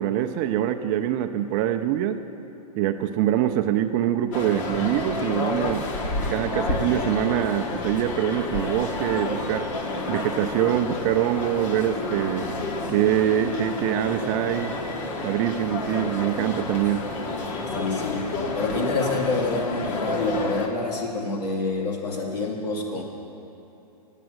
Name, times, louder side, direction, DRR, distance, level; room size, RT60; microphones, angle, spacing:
voice 1, 0.0-2.2 2.8-5.9 6.3-9.7 10.1-12.5 12.9-14.8 15.2-17.0, right 11 dB, 30° right, 7 dB, 0.4 m, -24 dB
sound 1, 4.3-20.7, left 2 dB, 50° left, 1.4 m, -30 dB
voice 2, 17.7-23.0, left 3 dB, 75° left, -1 dB, 2.5 m, -27 dB
9.2 x 8.9 x 7.8 m, 2.8 s
hypercardioid pair, 140°, 21 cm